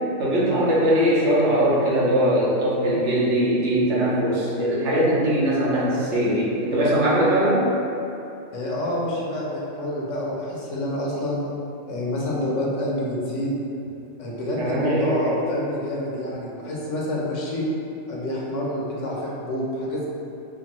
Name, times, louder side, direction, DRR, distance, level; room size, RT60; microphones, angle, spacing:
voice 1, 0.2-7.6 14.5-15.2, right 1 dB, 65° right, -6 dB, 1.2 m, -21 dB
voice 2, 8.5-11.4 11.9-13.5 14.2-17.6 18.1-20.1, left 1 dB, 75° left, -4 dB, 1.1 m, -28 dB
6.0 x 2.2 x 2.9 m, 2.9 s
omnidirectional pair, 1.3 m